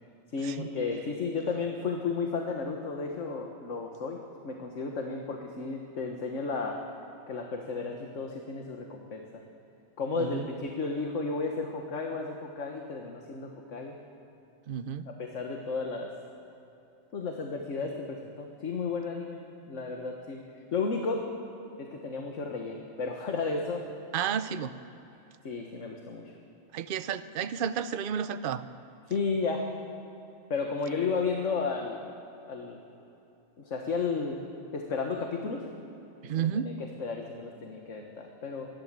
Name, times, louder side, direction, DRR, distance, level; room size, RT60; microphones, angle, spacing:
voice 1, 0.3-4.2 4.4-6.8 7.3-9.4 10.0-14.0 15.1-16.1 17.1-19.4 19.7-20.4 20.7-21.2 21.8-23.8 25.4-26.3 29.1-29.7 30.5-32.1 32.4-32.8 33.6-34.4 34.7-35.6 36.3-38.7, left 4 dB, 65° left, 2 dB, 1.7 m, -33 dB
voice 2, 14.7-15.1 24.1-24.7 26.7-28.6 36.2-36.7, right 8 dB, 50° right, 12 dB, 0.8 m, -31 dB
28.0 x 12.5 x 7.6 m, 2.9 s
omnidirectional pair, 1.4 m